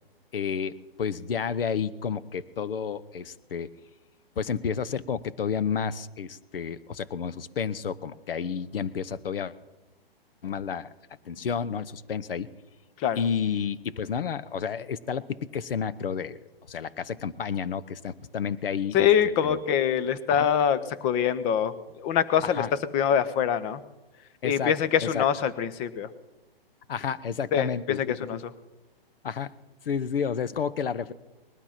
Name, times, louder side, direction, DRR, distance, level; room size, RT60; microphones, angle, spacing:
voice 1, 0.3-3.7 4.4-9.5 10.4-10.9 11.2-12.5 13.1-16.4 16.7-19.0 19.4-19.6 20.3-20.5 22.4-22.7 24.4-24.7 25.1-25.2 26.9-28.4 29.2-29.5 29.8-31.1, left 7 dB, 65° left, 15 dB, 0.9 m, -31 dB
voice 2, 18.9-22.6 22.9-23.8 24.4-26.1 27.5-28.4, left 8 dB, 20° left, 14 dB, 0.7 m, -24 dB
20.0 x 12.0 x 5.9 m, 1.1 s
hypercardioid pair, 135°, 30 cm